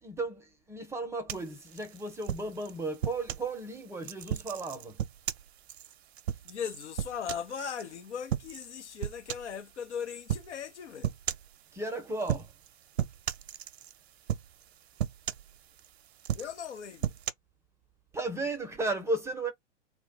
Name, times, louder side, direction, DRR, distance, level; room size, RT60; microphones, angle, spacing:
voice 1, 0.0-5.0 11.7-12.5 18.1-19.5, right 2 dB, 10° right, 0.6 m, -35 dB
sound 1, 1.3-3.5 4.0-7.8 8.3-8.7 9.0-9.6 10.3-10.5 11.0-11.5 12.2-12.7 13.0-14.0 14.3-14.7 15.0-15.9 16.2-17.3, right 10 dB, 60° right, 0.6 m, -35 dB
voice 2, 6.4-11.1 16.3-17.2, left 7 dB, 70° left, 0.8 m, -38 dB
2.3 x 2.1 x 3.8 m
figure-of-eight pair, 110°, 36 cm